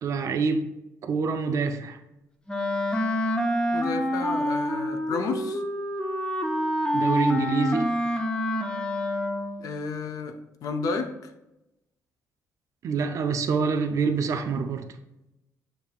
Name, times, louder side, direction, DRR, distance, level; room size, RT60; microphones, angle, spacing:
voice 1, 0.0-0.7 1.0-2.0 6.9-7.9 12.8-15.0, right 5 dB, 55° right, 7 dB, 0.4 m, -26 dB
Wind instrument woodwind instrument, 2.5-9.6, equal, 15° left, 0.5 m, -27 dB
voice 2, 3.7-5.6 9.6-11.3, left 4 dB, 65° left, 6 dB, 0.5 m, -31 dB
6.6 x 2.6 x 2.4 m, 0.92 s
cardioid pair, 110°, 6 cm